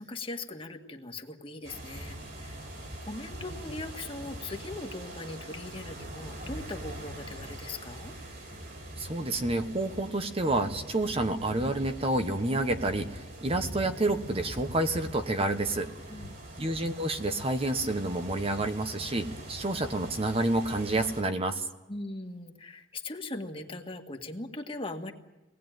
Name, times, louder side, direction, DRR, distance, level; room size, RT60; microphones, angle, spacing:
voice 1, 0.0-2.7 3.0-8.2 16.1-16.6 21.9-25.1, left 2 dB, 30° left, 4 dB, 1.8 m, -40 dB
sound 1, 1.6-21.2, right 1 dB, 60° right, 5.0 m, -43 dB
voice 2, 9.0-15.9 16.6-21.6, right 2 dB, 30° right, 7 dB, 1.1 m, -29 dB
25.0 x 19.0 x 9.2 m, 1.1 s
head